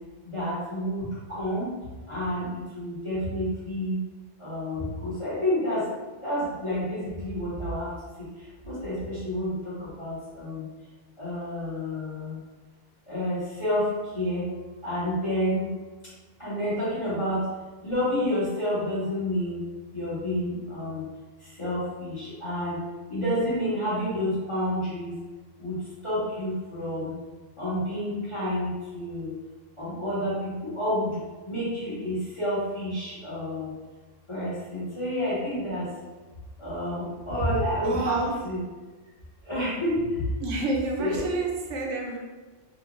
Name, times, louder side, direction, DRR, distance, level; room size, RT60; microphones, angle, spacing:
voice 1, 0.2-1.7 2.1-2.5 2.7-4.0 4.4-5.8 6.2-7.9 8.2-8.3 8.6-9.5 10.0-10.7 11.2-12.4 13.1-14.4 14.8-15.7 16.4-17.5 17.8-19.6 19.9-21.0 21.6-22.8 23.1-25.1 25.6-25.8 26.0-27.1 27.6-29.3 29.8-31.1 31.5-33.6 34.3-35.9 36.6-38.6 39.4-40.0 41.0-41.3, equal, 25° left, -11 dB, 1.3 m, -29 dB
voice 2, 37.8-38.3 40.4-42.2, right 2 dB, 85° right, 0 dB, 0.9 m, -29 dB
3.0 x 2.7 x 2.5 m, 1.2 s
omnidirectional pair, 1.2 m